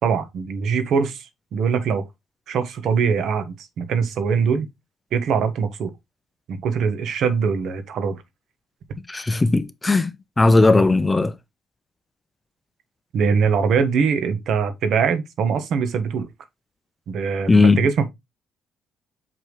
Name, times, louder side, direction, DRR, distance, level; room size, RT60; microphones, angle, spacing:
voice 1, 0.0-2.0 2.5-4.7 5.1-5.9 6.5-8.2 13.1-16.3 17.1-17.5 17.8-18.1, right 6 dB, 65° right, 1.3 m, -22 dB
voice 2, 9.1-11.3 17.5-17.9, left 3 dB, 15° left, 0.7 m, -17 dB
5.9 x 5.3 x 3.1 m
cardioid pair, 100°, 0 cm